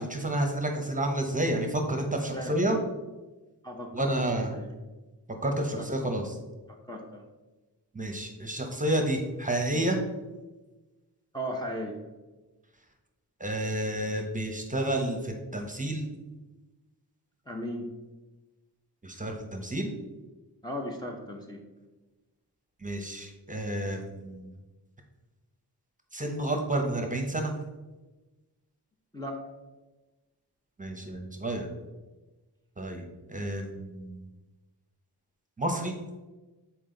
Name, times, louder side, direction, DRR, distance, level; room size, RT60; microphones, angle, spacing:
voice 1, 0.0-2.8 3.9-4.5 5.4-6.4 7.9-10.0 13.4-16.0 19.0-19.9 22.8-24.5 26.1-27.5 30.8-31.7 32.8-34.2 35.6-35.9, right 1 dB, 20° right, 3 dB, 0.9 m, -30 dB
voice 2, 3.6-4.2 4.5-4.8 5.8-5.9 6.7-7.3 11.3-12.0 17.5-17.9 20.6-21.6 29.1-29.5, equal, 10° left, -1 dB, 0.8 m, -36 dB
7.6 x 4.5 x 3.8 m, 1.2 s
wide cardioid pair, 110°, 41 cm